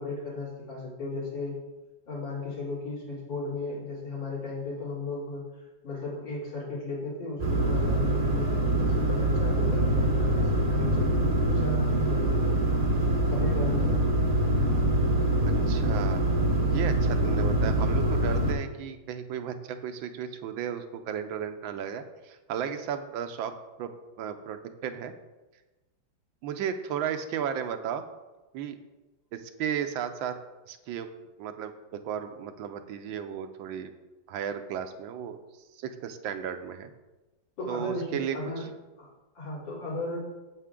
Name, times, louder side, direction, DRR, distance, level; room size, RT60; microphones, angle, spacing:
voice 1, 0.0-1.5 2.1-5.4 5.8-12.6 13.3-14.2 37.6-38.6 39.0-39.1 39.3-40.2, left 2 dB, 70° left, -7 dB, 4.0 m, -35 dB
sound 1, 7.4-18.5, right 1 dB, 35° right, 0.6 m, -24 dB
voice 2, 15.7-16.2 16.7-23.5 23.8-23.9 24.2-25.1 26.4-28.0 28.5-28.8 29.3-30.3 30.7-31.1 31.4-33.9 34.3-35.4 35.7-36.9 37.7-38.7, right 8 dB, 85° right, 8 dB, 1.4 m, -34 dB
8.3 x 7.9 x 3.7 m, 1.1 s
omnidirectional pair, 2.1 m